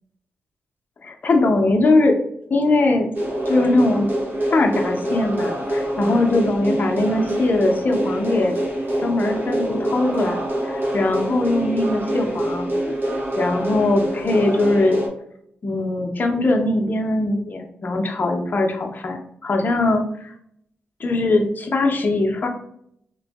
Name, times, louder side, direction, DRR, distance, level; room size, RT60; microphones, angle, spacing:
voice 1, 1.0-2.2 2.5-3.1 3.5-4.1 4.5-8.6 9.0-12.7 13.4-15.0 15.6-20.3 21.0-22.5, left 2 dB, 50° left, 3 dB, 0.6 m, -21 dB
sound 1, 3.1-15.1, right 1 dB, 55° right, 0.9 m, -25 dB
3.0 x 2.6 x 2.3 m, 0.72 s
cardioid pair, 65°, 4 cm